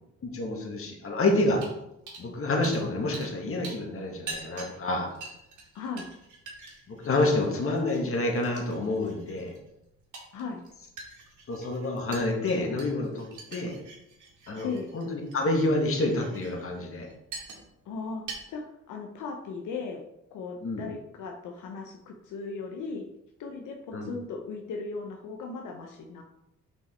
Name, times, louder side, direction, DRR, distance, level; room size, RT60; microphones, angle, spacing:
voice 1, 0.2-1.6 2.2-5.1 6.9-9.5 11.5-13.7 14.5-14.7 14.9-17.1 20.6-20.9 23.9-24.1, left 2 dB, 45° left, 1 dB, 1.9 m, -28 dB
sound 1, 1.6-1.8 2.1-2.3 2.6-3.4 3.6-17.9 18.2-18.4, right 4 dB, 80° right, 2.2 m, -45 dB
voice 2, 5.7-6.1 10.3-10.6 14.6-14.9 17.9-20.0 20.3-23.1 23.4-26.2, left 4 dB, 85° left, 1 dB, 0.9 m, -37 dB
5.9 x 5.4 x 4.5 m, 0.85 s
cardioid pair, 90°, 30 cm